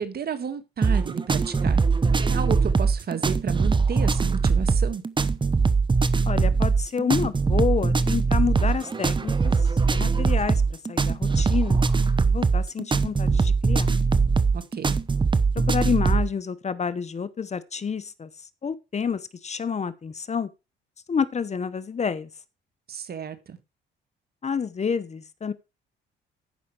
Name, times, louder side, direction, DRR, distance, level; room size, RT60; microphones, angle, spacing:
voice 1, 0.0-1.8 2.2-5.0 14.5-15.0 22.9-23.6, right 7 dB, 50° right, 1.8 m, -32 dB
sound 1, 0.8-16.3, right 4 dB, 25° right, 0.9 m, -22 dB
voice 2, 6.3-9.5 9.9-11.8 12.3-14.0 15.7-18.3 18.6-20.5 21.1-22.3 24.4-25.5, left 6 dB, 35° left, 0.9 m, -28 dB
14.5 x 5.7 x 4.8 m
cardioid pair, 90°, 20 cm